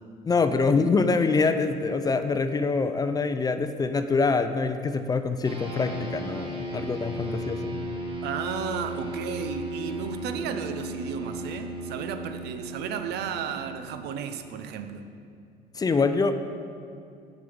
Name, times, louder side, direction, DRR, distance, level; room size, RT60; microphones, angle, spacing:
voice 1, 0.2-7.8 15.8-16.3, left 4 dB, 20° left, 9 dB, 0.4 m, -25 dB
sound 1, 5.4-15.2, right 1 dB, 30° right, 1.3 m, -36 dB
voice 2, 8.2-15.1, right 7 dB, 75° right, 8 dB, 0.6 m, -34 dB
6.8 x 5.1 x 7.0 m, 2.5 s
cardioid pair, 110°, 17 cm